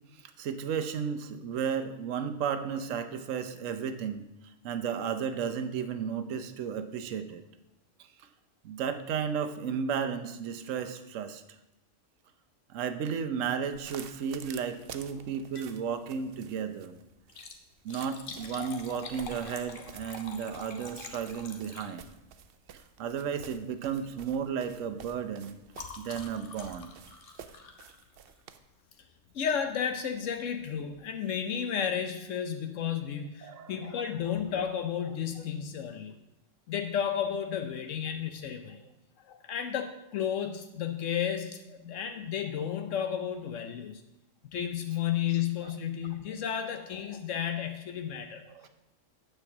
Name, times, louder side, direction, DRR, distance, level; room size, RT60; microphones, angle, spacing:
voice 1, 0.1-4.2 4.6-7.4 8.2-8.3 8.6-11.4 12.7-17.0 17.8-22.1 22.7-25.5 26.0-26.9 33.4-33.8 38.6-38.7 48.5-48.7, right 7 dB, 80° right, 9 dB, 1.1 m, -34 dB
sound 1, 13.7-28.6, right 7 dB, 60° right, 0.7 m, -50 dB
Liquid, 15.4-15.8 16.2-16.3 17.2-22.3 23.3-23.6 23.9-24.2 24.4-28.5 29.5-29.7 30.3-30.4 30.5-30.6, left 4 dB, 50° left, 1.0 m, -46 dB
voice 2, 29.3-36.1 36.7-38.8 39.3-44.0 44.5-48.4, left 8 dB, 75° left, 7 dB, 1.0 m, -32 dB
9.0 x 4.5 x 7.1 m, 0.92 s
omnidirectional pair, 1.3 m